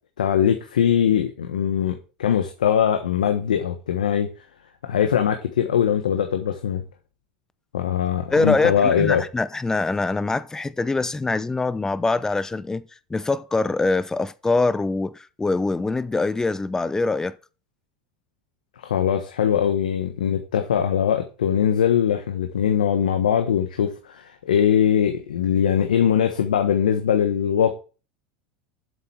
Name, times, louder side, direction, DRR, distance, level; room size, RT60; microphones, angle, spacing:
voice 1, 0.2-4.3 4.8-6.8 7.7-9.2 18.8-27.7, left 8 dB, 85° left, 1.2 m, -21 dB
voice 2, 8.3-12.8 13.1-17.3, left 3 dB, 15° left, 0.7 m, -23 dB
8.1 x 6.9 x 4.7 m
hypercardioid pair, 90°, 4 cm